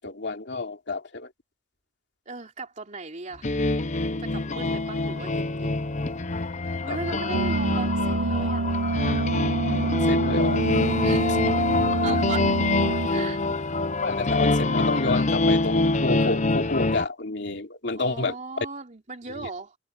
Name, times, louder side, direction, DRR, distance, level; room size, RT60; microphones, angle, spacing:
voice 1, 0.0-1.3 4.5-4.8 6.9-7.0 7.3-7.4 9.8-11.0 11.8-12.2 14.0-18.3, left 3 dB, 65° left, 3.0 m, -30 dB
voice 2, 2.3-3.5 4.2-5.9 6.6-8.7 11.0-11.6 12.0-12.5 13.1-13.4 17.9-19.8, right 3 dB, 40° right, 3.0 m, -37 dB
sound 1, 3.4-17.0, left 2 dB, 40° left, 0.9 m, -25 dB
sound 2, 7.3-13.1, right 2 dB, 90° right, 1.0 m, -26 dB
head